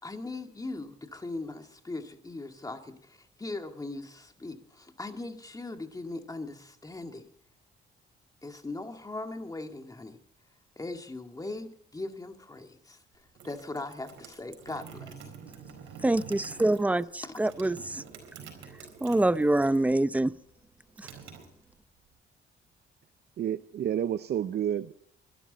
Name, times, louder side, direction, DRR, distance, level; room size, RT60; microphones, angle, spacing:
voice 1, 0.0-7.3 8.4-10.2 10.8-15.3 17.2-17.4, left 2 dB, 20° left, 5 dB, 2.1 m, -40 dB
sound 1, 13.1-19.9 20.2-22.1, right 7 dB, 80° right, 4.4 m, -48 dB
voice 2, 16.0-18.0 19.0-20.3 21.0-21.1, right 2 dB, 5° right, 16 dB, 0.6 m, -25 dB
voice 3, 23.4-24.9, right 10 dB, 55° right, 14 dB, 0.6 m, -30 dB
22.5 x 12.5 x 4.1 m, 0.67 s
cardioid pair, 90°, 20 cm